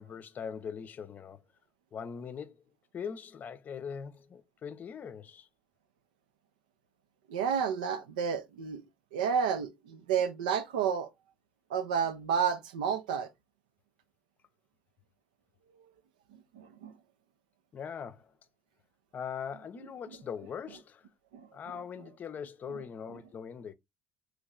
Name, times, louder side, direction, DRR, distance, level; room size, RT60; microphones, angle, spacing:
voice 1, 0.0-1.4 1.9-2.6 2.9-5.5 17.7-18.3 19.1-21.1 21.5-23.7, left 7 dB, 45° left, 0.6 m, -41 dB
voice 2, 7.3-8.8 9.1-11.1 11.7-13.3 16.5-16.9 21.3-21.5 22.7-22.8, right 7 dB, 85° right, 0.5 m, -31 dB
3.2 x 3.0 x 3.6 m
hypercardioid pair, 70°, 4 cm